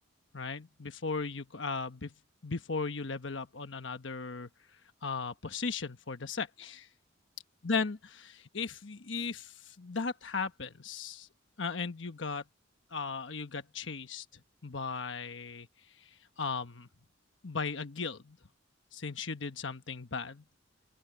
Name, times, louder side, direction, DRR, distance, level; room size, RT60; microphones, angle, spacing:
voice 1, 0.3-2.1 2.4-4.5 5.0-6.9 7.6-11.3 11.6-12.4 12.9-14.2 14.6-15.7 16.0-16.1 16.4-16.9 17.4-18.4 18.9-20.4, left 4 dB, 65° left, 1.2 m, -36 dB
open air
head